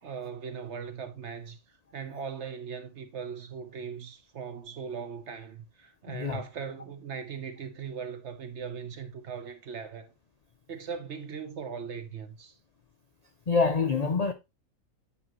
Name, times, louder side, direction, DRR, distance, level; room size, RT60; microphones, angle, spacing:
voice 1, 0.0-1.6 1.9-10.1 10.7-12.5, right 6 dB, 55° right, 1.2 m, -39 dB
voice 2, 6.1-6.4 13.5-14.3, left 4 dB, 80° left, 0.3 m, -26 dB
8.9 x 5.3 x 3.0 m
omnidirectional pair, 1.5 m